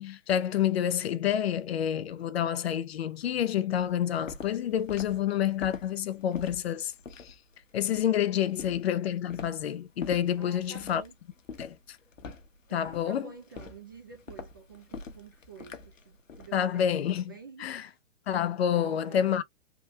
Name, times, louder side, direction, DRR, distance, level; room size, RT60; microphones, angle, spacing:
voice 1, 0.0-7.4 7.7-11.0 11.6-12.0 12.7-13.3 16.5-17.3 17.6-17.9 18.3-19.4, left 10 dB, 55° left, 0.5 m, -28 dB
Walk footsteps, 3.8-16.6, left 5 dB, 80° left, 0.9 m, -45 dB
voice 2, 10.4-11.2 12.7-18.0 18.7-19.4, right 6 dB, 20° right, 0.3 m, -50 dB
3.5 x 2.2 x 2.7 m
figure-of-eight pair, 125°, 38 cm